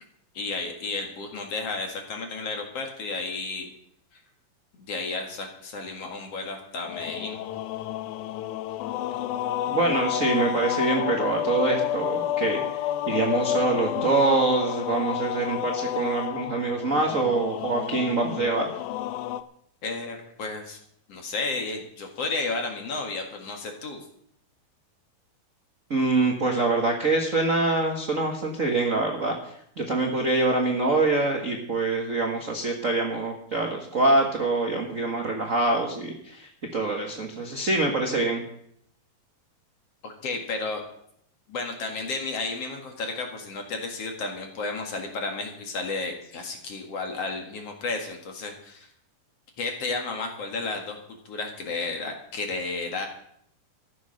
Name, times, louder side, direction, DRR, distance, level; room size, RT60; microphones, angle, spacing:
voice 1, 0.3-3.7 4.1-4.2 4.8-7.4 19.8-20.8 21.1-24.0 40.0-40.8 41.5-48.9 49.6-51.0 51.3-53.1, left 3 dB, 50° left, 3 dB, 2.6 m, -32 dB
sound 1, 6.9-19.4, left 11 dB, 80° left, 1.9 m, -30 dB
voice 2, 9.7-18.7 25.9-38.4, right 3 dB, 55° right, 1 dB, 0.8 m, -25 dB
14.0 x 9.8 x 6.5 m, 0.70 s
omnidirectional pair, 4.2 m